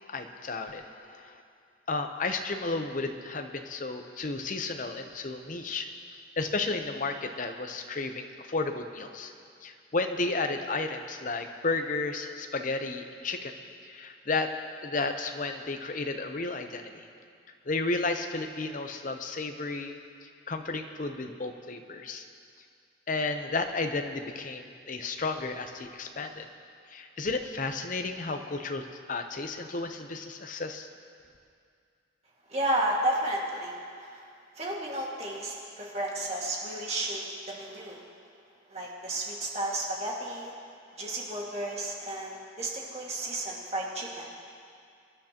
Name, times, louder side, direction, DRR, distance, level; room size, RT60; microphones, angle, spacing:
voice 1, 0.0-1.4 1.9-5.9 6.4-9.3 9.6-13.6 13.9-14.5 14.8-17.1 17.7-22.2 23.1-26.5 26.9-30.9, left 3 dB, 45° left, 6 dB, 0.7 m, -33 dB
voice 2, 32.5-34.3 34.6-38.0 38.7-40.5 40.9-44.3, right 1 dB, 35° right, -3 dB, 1.9 m, -32 dB
25.0 x 10.5 x 2.9 m, 2.3 s
head